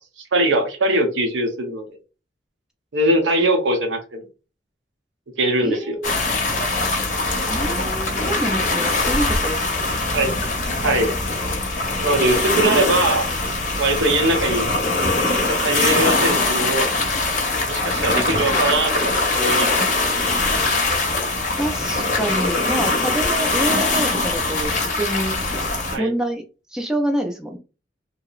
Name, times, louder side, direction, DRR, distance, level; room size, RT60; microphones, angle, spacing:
voice 1, 0.3-1.8 2.9-4.2 5.4-6.0 10.1-10.3 10.8-11.1 12.0-13.2 13.8-14.7 15.3-16.9 17.7-19.7 25.9-26.1, right 1 dB, 90° right, 5 dB, 0.7 m, -21 dB
voice 2, 5.6-6.1 7.4-9.7 21.5-25.4 26.0-26.4 26.7-27.6, right 1 dB, 5° right, 3 dB, 0.3 m, -26 dB
sound 1, 6.0-26.0, left 2 dB, 40° left, 0.6 m, -22 dB
2.7 x 2.0 x 2.3 m, 0.32 s
head